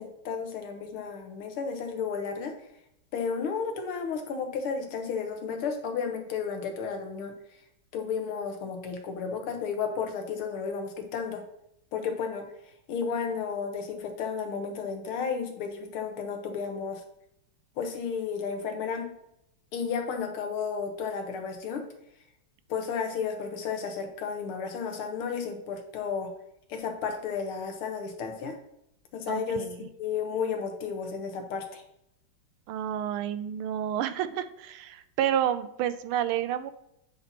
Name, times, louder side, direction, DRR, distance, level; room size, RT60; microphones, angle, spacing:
voice 1, 0.0-2.5 3.1-7.3 7.9-11.4 11.9-12.4 12.9-17.0 17.8-19.1 19.7-21.8 22.7-26.3 26.7-28.6 29.1-29.7 30.0-31.8, left 6 dB, 85° left, 4 dB, 2.0 m, -32 dB
voice 2, 29.3-29.9 32.7-36.7, right 10 dB, 90° right, 12 dB, 1.5 m, -30 dB
8.6 x 4.0 x 4.2 m, 0.78 s
omnidirectional pair, 2.3 m